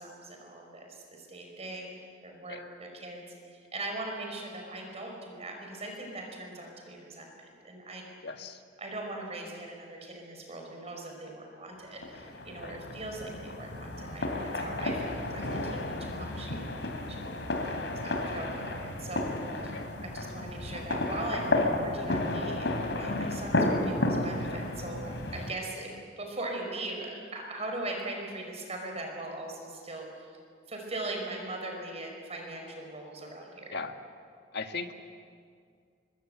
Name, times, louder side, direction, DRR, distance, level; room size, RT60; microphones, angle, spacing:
voice 1, 0.0-1.9 2.2-8.0 8.8-16.6 17.1-17.3 17.9-19.3 19.6-30.2 30.7-33.7, right 2 dB, 35° right, 2 dB, 5.3 m, -40 dB
voice 2, 8.2-8.6 12.6-12.8 19.7-19.9 33.7-34.0 34.5-35.0, left 4 dB, 65° left, 6 dB, 1.7 m, -38 dB
sound 1, 12.0-25.5, left 2 dB, 90° left, 3.1 m, -32 dB
25.5 x 23.5 x 7.9 m, 2.2 s
head